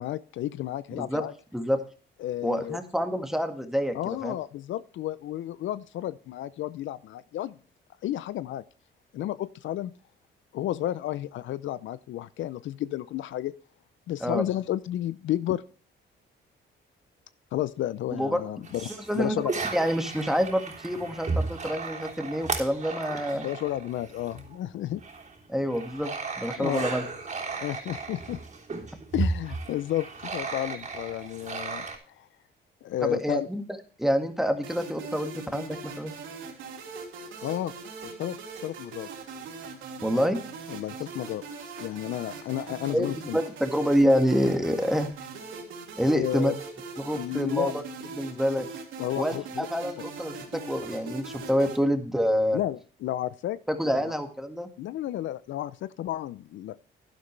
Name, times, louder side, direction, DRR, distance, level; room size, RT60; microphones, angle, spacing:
voice 1, 0.0-1.3 2.2-2.8 3.9-7.6 8.0-8.6 9.1-9.9 10.5-13.5 14.1-15.6 17.5-19.5 23.4-25.0 26.6-26.9 27.6-28.4 29.1-32.3 32.8-33.5 37.4-37.7 38.0-38.4 38.6-39.1 40.7-41.4 41.8-43.4 46.1-46.6 47.2-47.7 49.0-49.7 52.5-53.6 53.8-54.1 54.8-56.8, left 13 dB, 75° left, 16 dB, 0.5 m, -32 dB
voice 2, 0.9-1.2 1.5-1.8 2.4-4.3 14.2-14.4 18.1-18.4 19.1-19.4 19.7-23.5 25.5-26.1 26.4-27.0 33.0-33.6 34.0-36.2 40.0-40.4 42.9-45.1 46.0-46.5 47.0-47.8 48.1-48.7 49.2-52.6 53.7-54.7, equal, ahead, 6 dB, 1.8 m, -27 dB
sound 1, 18.6-24.6 24.9-32.0, right 4 dB, 40° right, 3.4 m, -35 dB
sound 2, 34.6-51.8, right 4 dB, 85° right, 2.8 m, -41 dB
11.5 x 11.5 x 3.3 m, 0.41 s
cardioid pair, 90°, 20 cm